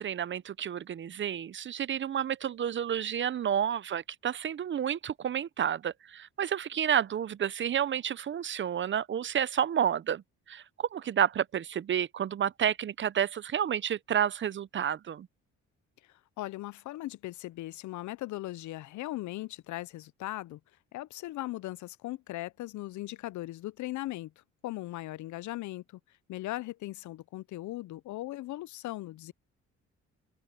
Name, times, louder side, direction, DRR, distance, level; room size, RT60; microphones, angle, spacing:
voice 1, 0.0-10.2 10.5-10.6 10.9-15.3, right 9 dB, 40° right, 0.5 m, -30 dB
voice 2, 16.4-20.6 20.9-24.3 24.6-25.8 26.3-29.3, left 17 dB, 70° left, 0.5 m, -38 dB
open air
cardioid pair, 90°, 30 cm